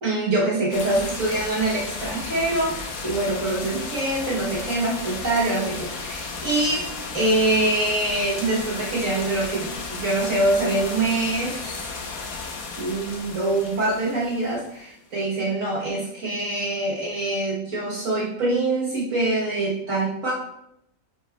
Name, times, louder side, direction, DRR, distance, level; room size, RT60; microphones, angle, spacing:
voice 1, 0.0-6.9 7.1-11.9 12.8-20.3, right 2 dB, 60° right, -5 dB, 1.6 m, -24 dB
sound 1, 0.7-15.0, left 4 dB, 70° left, 1.4 m, -34 dB
10.0 x 4.7 x 2.3 m, 0.78 s
omnidirectional pair, 1.6 m